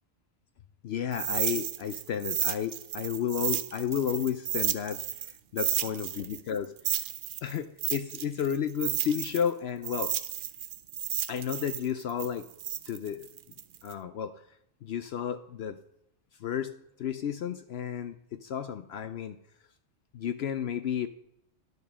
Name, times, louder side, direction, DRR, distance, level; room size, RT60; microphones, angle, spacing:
voice 1, 0.8-5.0 5.5-6.7 7.4-10.1 11.3-12.5 12.9-13.3 13.8-14.4 14.8-15.8 16.4-16.7 17.0-19.4 20.1-21.1, left 8 dB, 65° left, 11 dB, 0.7 m, -32 dB
sound 1, 1.1-5.3 5.6-9.5 9.8-13.9, right 10 dB, 60° right, 0.6 m, -32 dB
11.0 x 5.3 x 6.1 m, 0.81 s
omnidirectional pair, 1.3 m